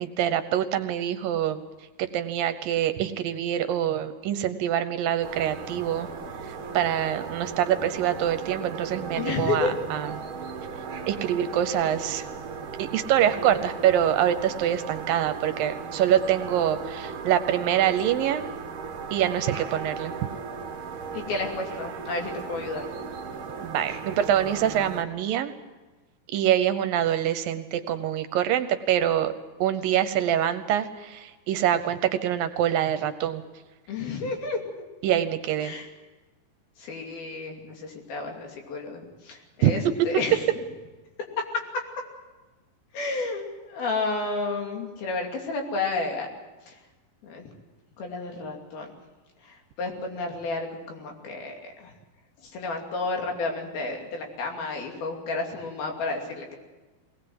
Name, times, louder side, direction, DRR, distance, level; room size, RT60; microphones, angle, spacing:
voice 1, 0.0-1.6 2.0-6.1 6.7-10.2 11.1-12.3 12.8-18.5 19.1-20.2 23.6-25.5 26.3-29.3 29.6-33.4 35.0-35.7 39.6-39.7, right 10 dB, 75° right, 10 dB, 2.5 m, -25 dB
sound 1, 5.2-25.0, right 5 dB, 45° right, 2.0 m, -37 dB
voice 2, 9.2-9.8 21.1-22.9 33.9-34.8 35.6-35.9 36.8-40.4 42.9-46.3 46.7-46.8 47.2-47.5 48.0-48.9 49.4-51.9 52.4-56.6, left 3 dB, 75° left, 2 dB, 4.6 m, -31 dB
21.5 x 19.0 x 7.8 m, 1.2 s
omnidirectional pair, 4.4 m